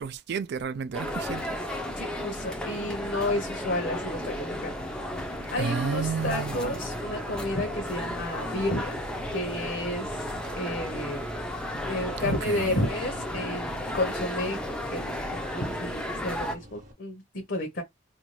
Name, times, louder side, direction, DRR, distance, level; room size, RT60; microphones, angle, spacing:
voice 1, 0.0-1.5 5.6-6.8 12.2-12.9, right 6 dB, 60° right, 0.3 m, -32 dB
sound 1, 0.9-16.6, equal, 5° left, 0.4 m, -34 dB
voice 2, 2.0-4.9 5.5-9.0 9.3-10.3 10.6-11.2 11.9-14.6 14.9-17.8, left 1 dB, 60° left, 0.7 m, -31 dB
sound 2, 3.9-16.9, equal, 40° right, 0.9 m, -46 dB
2.6 x 2.2 x 3.0 m
head